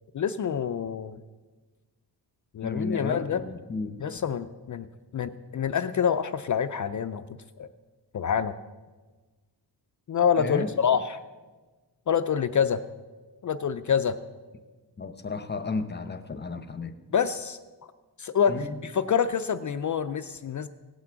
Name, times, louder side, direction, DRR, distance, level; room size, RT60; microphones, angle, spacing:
voice 1, 0.1-1.2 2.5-3.4 4.0-4.9 5.1-7.3 7.6-7.7 8.1-8.5 10.1-11.2 12.1-12.8 13.4-14.2 17.1-17.6 18.2-20.7, left 7 dB, 45° left, 11 dB, 0.4 m, -26 dB
voice 2, 2.6-4.1 10.4-10.7 15.0-16.9 18.5-18.8, left 3 dB, 25° left, 10 dB, 0.8 m, -33 dB
17.0 x 6.0 x 8.0 m, 1.3 s
wide cardioid pair, 155°, 43 cm